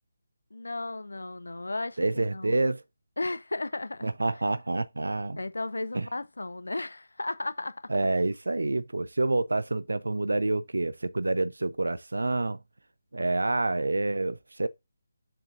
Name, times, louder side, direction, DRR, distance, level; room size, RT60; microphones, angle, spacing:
voice 1, 0.5-2.5 3.2-4.4 5.4-7.9, left 2 dB, 65° left, 0.7 m, -35 dB
voice 2, 2.0-2.8 4.0-5.4 5.9-6.1 7.9-12.6 13.1-14.7, right 2 dB, 65° right, 0.6 m, -28 dB
7.2 x 5.3 x 2.5 m
figure-of-eight pair, 150°, 0 cm